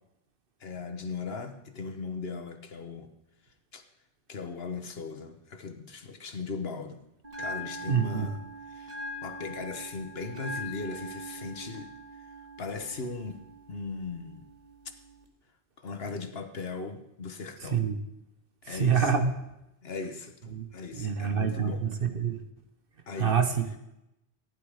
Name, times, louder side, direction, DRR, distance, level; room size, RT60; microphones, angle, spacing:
voice 1, 0.6-3.1 3.7-3.8 4.3-7.0 7.4-8.4 8.7-11.9 12.6-13.4 13.7-14.4 15.8-17.8 18.6-19.1 19.8-21.9 23.1-23.4, left 4 dB, 60° left, 8 dB, 1.4 m, -38 dB
Bell, 7.2-15.2, equal, 35° right, 1.8 m, -42 dB
voice 2, 7.9-8.3 17.7-18.0 18.7-19.3 20.5-20.7 20.9-22.4 23.2-23.8, right 7 dB, 55° right, 7 dB, 1.3 m, -26 dB
15.0 x 10.5 x 5.0 m, 0.87 s
omnidirectional pair, 1.1 m